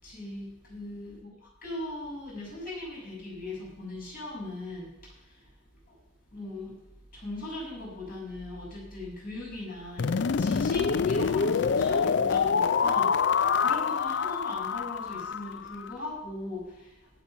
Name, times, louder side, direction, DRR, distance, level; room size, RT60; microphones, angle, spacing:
voice 1, 0.0-5.5 5.9-6.0 6.3-6.8 7.1-17.1, left 1 dB, 50° left, -4 dB, 6.4 m, -39 dB
sound 1, 10.0-15.9, left 6 dB, 65° left, 0.4 m, -26 dB
16.5 x 7.6 x 5.6 m, 0.86 s
head